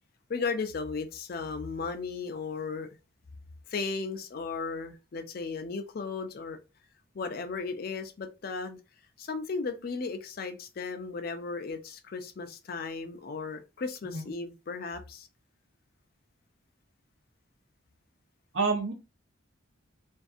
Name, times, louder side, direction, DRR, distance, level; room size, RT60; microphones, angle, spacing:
voice 1, 0.3-2.9 3.7-6.6 7.1-8.8 9.2-15.3, left 4 dB, 45° left, 0.4 m, -35 dB
voice 2, 18.5-18.9, right 4 dB, 70° right, 0.7 m, -28 dB
2.5 x 2.5 x 2.4 m
head